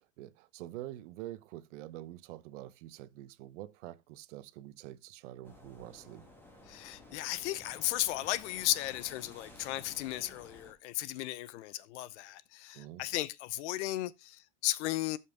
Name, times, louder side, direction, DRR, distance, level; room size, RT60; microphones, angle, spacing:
voice 1, 0.0-6.3 12.7-13.0, right 15 dB, 80° right, 0.9 m, -46 dB
sound 1, 5.4-10.7, left 1 dB, 5° left, 1.5 m, -54 dB
voice 2, 6.7-15.2, left 16 dB, 70° left, 0.8 m, -35 dB
13.0 x 5.7 x 3.5 m
supercardioid pair, 175°, 36 cm